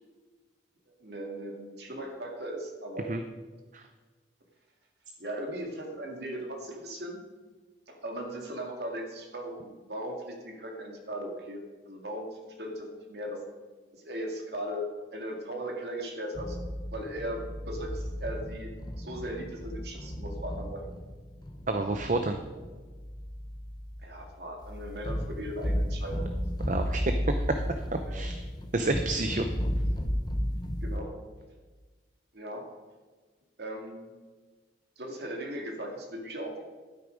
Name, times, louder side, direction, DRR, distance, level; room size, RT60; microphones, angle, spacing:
voice 1, 1.0-3.1 5.2-7.2 7.9-13.4 14.0-16.6 16.9-18.7 19.0-20.8 24.0-26.3 28.0-28.2 30.8-31.1 32.3-32.7 33.6-34.1 35.0-36.6, right 1 dB, 65° right, 1 dB, 2.1 m, -38 dB
sound 1, 16.3-31.0, equal, 25° left, 0.8 m, -34 dB
voice 2, 21.7-22.4 26.7-28.5 28.7-29.5, right 2 dB, 40° right, 6 dB, 0.7 m, -29 dB
12.0 x 9.8 x 5.1 m, 1.3 s
head